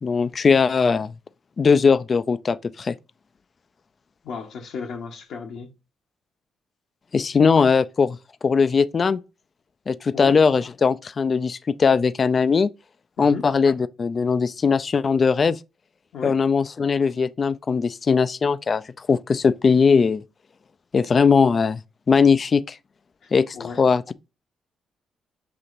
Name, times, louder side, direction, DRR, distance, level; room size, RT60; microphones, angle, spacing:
voice 1, 0.0-1.1 1.6-3.0 7.1-8.2 8.4-9.2 9.9-12.7 13.2-15.6 16.2-20.2 20.9-21.8 22.1-22.8 23.3-24.0, left 5 dB, 45° left, 0.3 m, -19 dB
voice 2, 4.2-5.7 10.1-10.4 13.2-13.5 16.1-16.4 23.2-23.8, left 5 dB, 75° left, 0.8 m, -34 dB
6.6 x 2.8 x 2.5 m
supercardioid pair, 55°, 0 cm